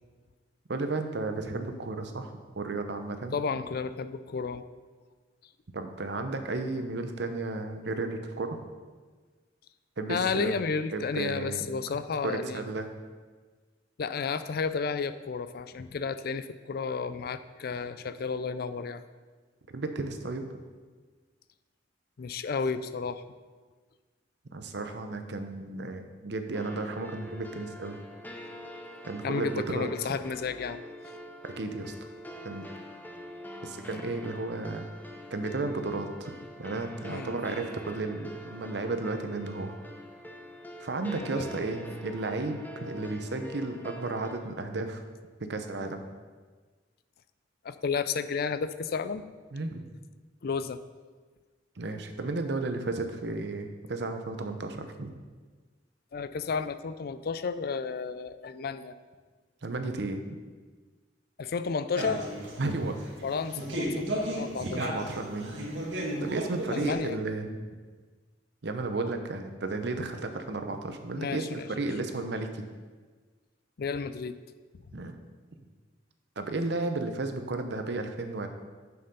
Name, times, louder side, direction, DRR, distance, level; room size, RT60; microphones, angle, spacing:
voice 1, 0.7-3.4 5.7-8.6 10.0-10.5 10.9-11.7 11.9-12.9 19.7-20.6 24.5-28.0 29.1-30.1 31.4-31.9 32.4-32.7 33.6-34.9 35.3-36.3 36.6-39.7 40.8-45.0 45.4-46.0 49.5-49.8 51.8-55.1 59.6-60.2 62.6-63.0 64.6-65.5 66.2-67.6 68.6-72.6 74.9-75.2 76.4-78.5, right 2 dB, 65° right, 7 dB, 0.8 m, -33 dB
voice 2, 3.3-4.6 10.1-12.6 14.0-19.0 22.2-23.2 29.2-30.8 37.1-37.3 41.2-41.7 47.6-49.3 50.4-50.8 56.1-58.9 61.4-62.3 63.2-64.9 66.7-67.2 71.2-71.7 73.8-74.4, left 5 dB, 55° left, 12 dB, 0.4 m, -32 dB
sound 1, 26.5-44.3, equal, 10° left, 0.7 m, -44 dB
sound 2, 62.0-66.9, right 1 dB, 90° right, 1.7 m, -34 dB
6.8 x 6.6 x 5.4 m, 1.4 s
head